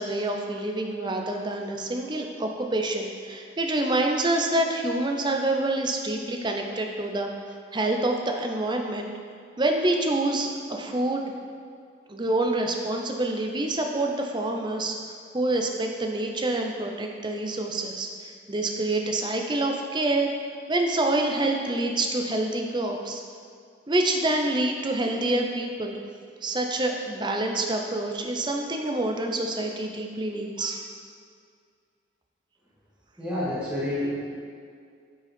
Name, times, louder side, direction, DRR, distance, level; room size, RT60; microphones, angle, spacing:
voice 1, 0.0-7.3 7.7-9.1 9.6-11.2 12.1-15.0 15.3-20.3 20.7-23.2 23.9-26.0 26.4-30.8, right 2 dB, 25° right, 2 dB, 0.7 m, -27 dB
voice 2, 33.2-34.1, left 1 dB, 5° right, -9 dB, 1.9 m, -28 dB
8.9 x 5.5 x 4.4 m, 2.2 s
head